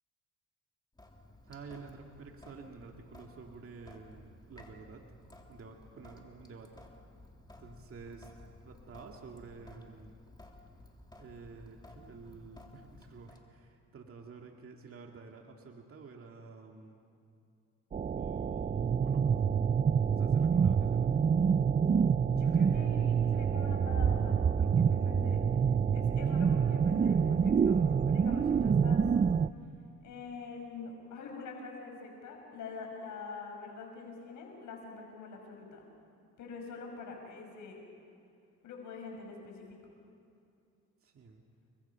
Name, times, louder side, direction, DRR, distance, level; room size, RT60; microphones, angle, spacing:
Sink (filling or washing) / Drip, 1.0-13.4, left 2 dB, 15° left, 3.2 m, -55 dB
voice 1, 1.4-5.0 5.5-6.8 7.6-8.3 8.6-10.2 11.2-17.0 18.1-19.2 20.1-21.2 41.0-41.4, right 4 dB, 45° right, 2 dB, 2.2 m, -50 dB
sound 1, 17.9-29.5, right 6 dB, 25° right, 0.5 m, -27 dB
voice 2, 22.3-25.4 25.9-27.8 28.1-29.1 30.0-35.9 36.4-37.9 38.6-39.8, left 4 dB, 80° left, 1 dB, 5.5 m, -45 dB
30.0 x 22.5 x 5.7 m, 2.5 s
cardioid pair, 90°, 30 cm